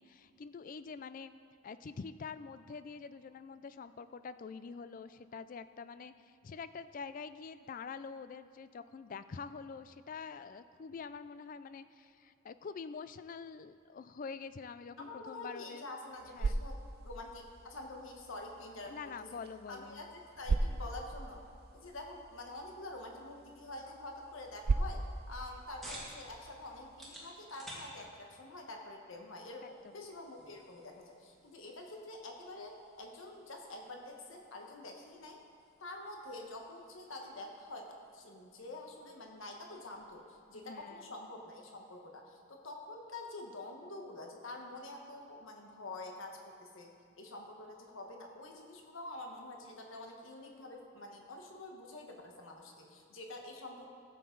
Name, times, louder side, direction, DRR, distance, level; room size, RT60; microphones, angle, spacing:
voice 1, 0.0-1.3 1.6-15.9 16.3-16.6 18.9-20.1 29.8-30.0 40.5-41.1, left 5 dB, 40° left, 13 dB, 0.3 m, -46 dB
voice 2, 15.0-16.8 17.0-19.3 19.7-21.4 21.7-25.0 25.3-35.4 35.8-46.9 47.2-53.9, left 2 dB, 70° left, 1 dB, 1.2 m, -47 dB
sound 1, 16.0-27.1, right 3 dB, 45° right, 0.4 m, -39 dB
sound 2, 25.2-40.3, equal, ahead, 1.9 m, -56 dB
15.0 x 7.6 x 3.8 m, 2.4 s
head